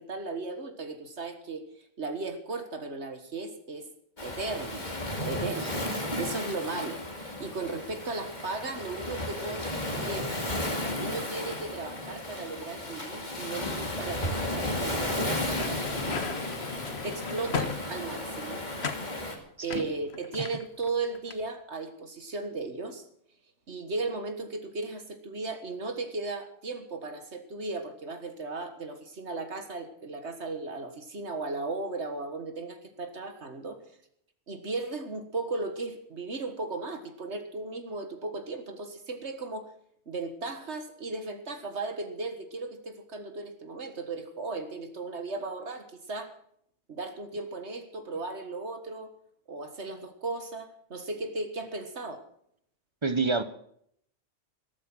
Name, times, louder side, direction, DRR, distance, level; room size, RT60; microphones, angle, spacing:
voice 1, 0.0-3.9 4.2-4.9 5.2-5.9 6.2-10.3 11.0-16.4 17.0-18.7 19.6-23.0 23.7-33.8 34.5-39.7 40.1-46.3 46.9-49.1 49.5-52.2, right 3 dB, 65° right, 7 dB, 1.9 m, -36 dB
Waves surf, 4.2-19.4, left 1 dB, 35° left, 2.6 m, -34 dB
voice 2, 5.6-6.2 19.6-19.9 20.4-20.5 53.0-53.4, right 4 dB, 25° right, 13 dB, 0.9 m, -30 dB
sound 1, 15.3-18.3 18.8-19.1 19.7-20.9 21.1-21.4, left 5 dB, 60° left, 1.5 m, -36 dB
13.5 x 13.5 x 6.2 m, 0.68 s
omnidirectional pair, 1.3 m